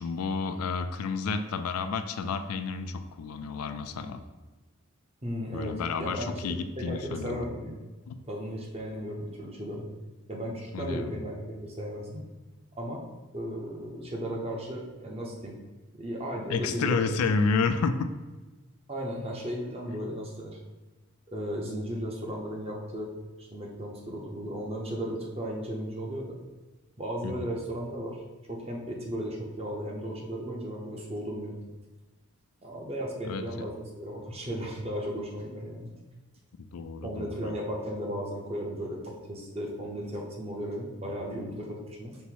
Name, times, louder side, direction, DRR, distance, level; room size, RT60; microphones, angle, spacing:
voice 1, 0.0-4.2 5.5-7.4 8.1-8.2 10.7-11.1 16.5-18.1 27.2-27.5 33.2-33.4 36.6-37.5, left 4 dB, 85° left, 9 dB, 0.4 m, -30 dB
voice 2, 5.2-6.3 6.8-7.8 8.3-9.9 10.3-12.2 12.7-13.0 13.3-15.6 15.9-17.2 18.9-20.6 21.3-23.1 23.4-26.4 27.0-28.2 28.4-31.6 32.6-35.9 37.0-42.2, equal, 25° right, -1 dB, 0.7 m, -35 dB
5.4 x 2.0 x 4.5 m, 1.2 s
head